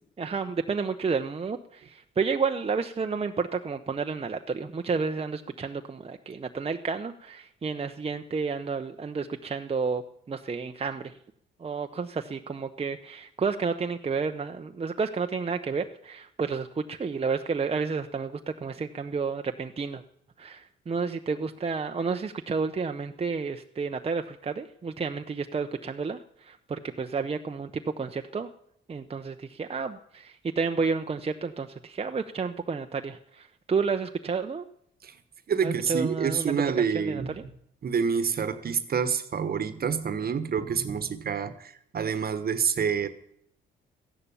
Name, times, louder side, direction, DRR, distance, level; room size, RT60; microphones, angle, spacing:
voice 1, 0.2-10.0 10.3-11.1 11.6-20.0 20.4-28.5 28.9-34.6 35.6-37.4, right 5 dB, 30° right, 6 dB, 0.8 m, -31 dB
voice 2, 35.5-37.4 37.8-43.1, right 6 dB, 50° right, 12 dB, 1.3 m, -27 dB
14.5 x 11.0 x 7.1 m, 0.71 s
supercardioid pair, 70°, 20 cm